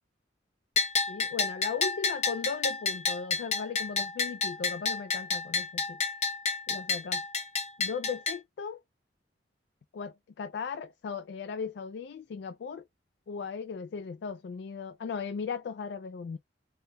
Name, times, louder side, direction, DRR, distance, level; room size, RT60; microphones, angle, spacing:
Bell, 0.8-8.4, left 4 dB, 40° left, 0.7 m, -30 dB
voice 1, 1.1-6.0 6.7-7.2 7.8-8.8 9.9-12.8 13.3-16.4, left 5 dB, 65° left, 0.3 m, -37 dB
3.3 x 2.3 x 4.0 m
head